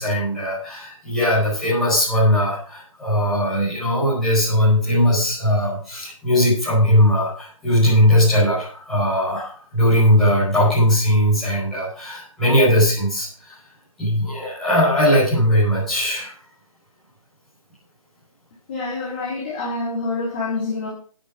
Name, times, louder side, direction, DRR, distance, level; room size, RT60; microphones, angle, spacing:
voice 1, 0.0-13.6 14.0-16.3, equal, ahead, -10 dB, 5.3 m, -19 dB
voice 2, 18.7-20.9, left 3 dB, 20° left, -5 dB, 2.6 m, -26 dB
12.5 x 9.7 x 5.0 m, 0.43 s
figure-of-eight pair, 165°, 18 cm